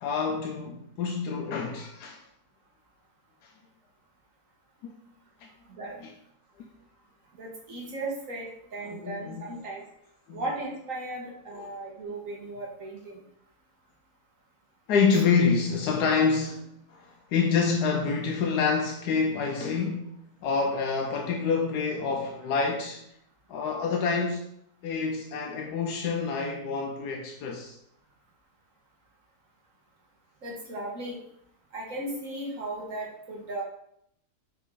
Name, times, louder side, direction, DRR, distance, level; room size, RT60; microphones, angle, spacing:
voice 1, 0.0-2.2 6.0-6.1 9.0-9.4 10.3-10.4 11.5-11.7 14.9-20.1 20.4-23.0 23.5-24.4 24.8-27.8, left 5 dB, 85° left, 1.3 m, -27 dB
voice 2, 7.4-9.8 10.3-13.2 15.1-15.2 30.4-31.2 31.7-33.6, right 2 dB, 55° right, 1.8 m, -36 dB
6.0 x 4.5 x 3.7 m
omnidirectional pair, 1.7 m